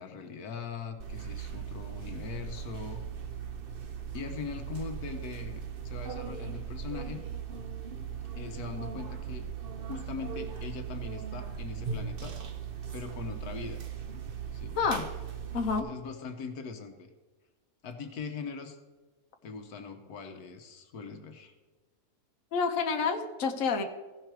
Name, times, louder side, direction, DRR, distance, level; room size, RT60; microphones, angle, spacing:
voice 1, 0.0-3.0 4.1-7.2 8.3-9.5 9.9-12.4 12.9-13.8 14.5-14.8 15.8-17.1 17.8-18.8 19.4-21.5, left 5 dB, 80° left, 6 dB, 1.4 m, -41 dB
sound 1, 1.0-15.8, right 7 dB, 50° right, 0.8 m, -39 dB
voice 2, 15.5-15.9 22.5-23.8, left 5 dB, 60° left, 4 dB, 1.3 m, -28 dB
15.5 x 5.7 x 4.6 m, 1.2 s
omnidirectional pair, 1.6 m